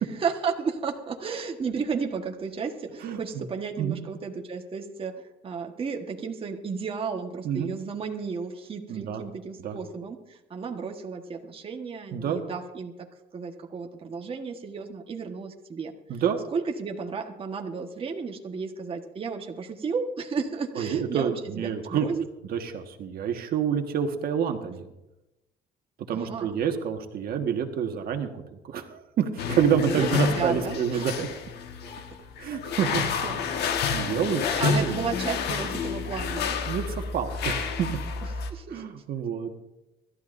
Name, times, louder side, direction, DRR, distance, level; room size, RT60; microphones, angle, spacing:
voice 1, 0.0-12.9 13.3-16.2 16.5-22.2 26.1-26.5 29.9-31.0 32.8-32.9 33.2-33.4 34.6-36.5 38.5-38.8, right 5 dB, 35° right, 2 dB, 1.4 m, -33 dB
voice 2, 3.0-3.5 3.8-4.0 7.4-7.7 8.9-9.2 9.6-9.8 12.1-12.4 16.1-16.4 20.8-22.1 22.5-24.9 26.1-31.3 32.4-33.0 33.9-34.9 36.7-38.0 38.7-39.5, right 8 dB, 60° right, 4 dB, 1.6 m, -28 dB
sound 1, 29.4-38.5, left 5 dB, 75° left, 1.6 m, -29 dB
26.0 x 13.0 x 2.7 m, 0.94 s
cardioid pair, 110°, 17 cm